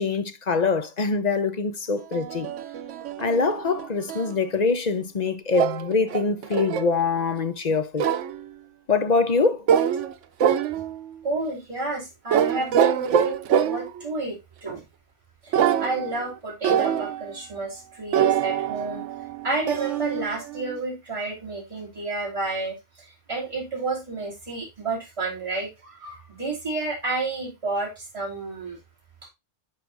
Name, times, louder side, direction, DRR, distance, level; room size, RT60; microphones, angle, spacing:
voice 1, 0.0-2.5 3.2-8.1 8.9-9.6, left 4 dB, 40° left, 0.8 m, -24 dB
sound 1, 2.1-4.3 5.5-7.0 8.0-8.4 9.7-10.1 10.4-11.1 12.3-14.0 15.5-16.3 16.6-17.3 18.1-20.8, right 8 dB, 85° right, 1.0 m, -24 dB
voice 2, 11.2-14.8 15.4-19.0 19.4-28.8, right 3 dB, 25° right, 2.8 m, -31 dB
10.5 x 4.8 x 2.5 m
omnidirectional pair, 1.2 m